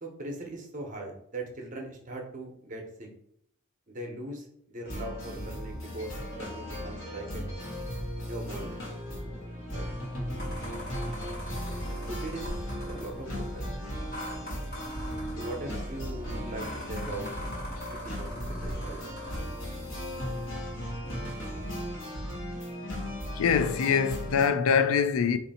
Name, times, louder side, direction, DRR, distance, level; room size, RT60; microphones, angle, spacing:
voice 1, 0.0-3.1 3.9-7.5 8.2-8.8 9.7-9.9 12.1-12.5 12.8-13.7 15.4-17.3 18.0-19.0, right 2 dB, 40° right, 0.8 m, -40 dB
sound 1, 4.9-24.5, equal, 65° left, 1.4 m, -36 dB
sound 2, 10.4-19.4, equal, 45° left, 1.5 m, -43 dB
voice 2, 23.3-25.4, left 6 dB, 80° left, 0.3 m, -24 dB
3.1 x 2.7 x 4.1 m
head